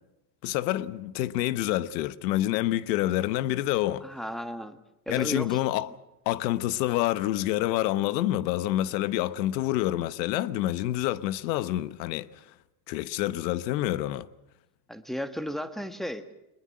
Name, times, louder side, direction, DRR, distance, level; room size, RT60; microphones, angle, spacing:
voice 1, 0.4-4.0 5.1-5.9 6.3-12.3 12.9-14.3, left 15 dB, 85° left, 1.1 m, -27 dB
voice 2, 4.0-4.8 5.1-5.6 14.9-16.3, equal, ahead, 1.4 m, -34 dB
22.5 x 21.0 x 7.6 m
supercardioid pair, 120°, 49 cm